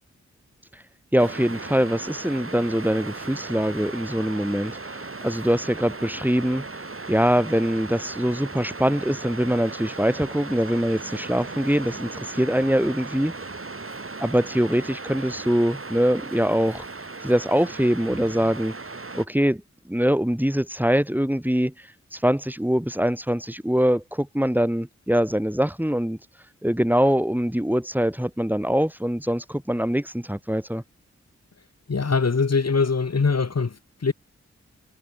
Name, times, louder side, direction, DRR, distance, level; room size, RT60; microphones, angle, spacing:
voice 1, 1.1-13.3 14.2-16.8 17.2-18.7 19.1-21.7 22.1-26.2 26.6-30.8, equal, 5° right, 5.6 m, -23 dB
Waves surf, 1.2-19.3, right 3 dB, 45° right, 5.8 m, -37 dB
voice 2, 31.9-34.1, left 4 dB, 60° left, 3.0 m, -22 dB
cardioid pair, 45°, 29 cm